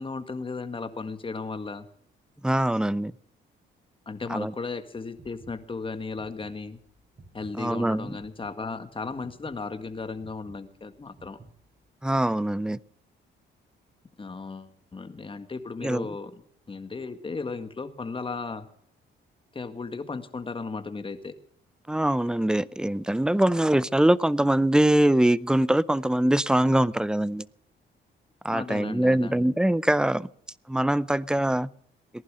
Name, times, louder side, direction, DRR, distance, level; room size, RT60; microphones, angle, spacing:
voice 1, 0.0-1.9 4.1-6.8 7.3-11.4 14.2-16.3 16.7-18.7 19.5-21.3 28.5-29.6, left 4 dB, 25° left, 1.7 m, -35 dB
voice 2, 2.4-3.1 4.3-4.5 7.6-8.2 12.0-12.8 15.8-16.1 21.9-27.5 28.4-30.3 30.7-31.7, right 1 dB, 5° right, 0.5 m, -23 dB
sound 1, 5.1-11.9, right 2 dB, 40° right, 6.2 m, -53 dB
19.0 x 11.0 x 6.4 m
cardioid pair, 90°, 20 cm